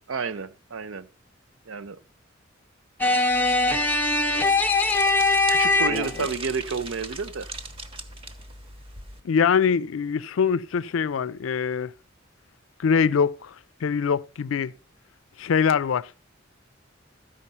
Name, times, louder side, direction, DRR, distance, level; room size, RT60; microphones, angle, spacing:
voice 1, 0.1-1.1 1.7-2.0 5.5-7.5, right 5 dB, 85° right, 0.6 m, -30 dB
sound 1, 3.0-6.3, left 3 dB, 10° left, 0.8 m, -21 dB
sound 2, 3.3-9.2, right 2 dB, 30° right, 1.0 m, -40 dB
voice 2, 9.2-11.9 12.8-13.5 13.8-14.7 15.4-16.1, left 6 dB, 80° left, 0.4 m, -23 dB
13.5 x 5.1 x 5.5 m
head